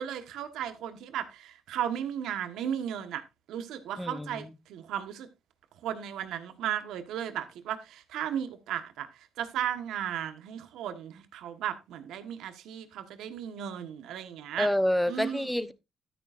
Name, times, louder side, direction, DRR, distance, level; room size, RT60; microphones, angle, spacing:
voice 1, 0.0-3.2 3.5-5.3 5.8-14.7 15.1-15.5, right 9 dB, 80° right, 1.3 m, -35 dB
voice 2, 4.0-4.5 14.6-15.7, equal, 5° left, 0.9 m, -28 dB
13.0 x 9.2 x 2.5 m
cardioid pair, 80°, 0 cm